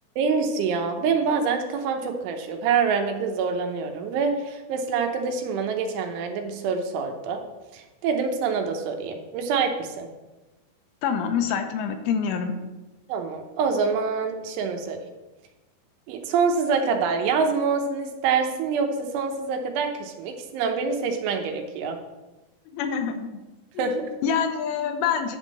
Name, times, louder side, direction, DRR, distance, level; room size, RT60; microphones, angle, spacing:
voice 1, 0.2-7.4 7.7-10.1 13.1-15.1 16.1-22.0 23.8-24.0, right 5 dB, 80° right, 4 dB, 3.3 m, -26 dB
voice 2, 11.0-12.5 22.7-23.4 23.7-25.4, left 7 dB, 85° left, 6 dB, 3.2 m, -26 dB
10.5 x 3.6 x 7.4 m, 1.1 s
omnidirectional pair, 5.6 m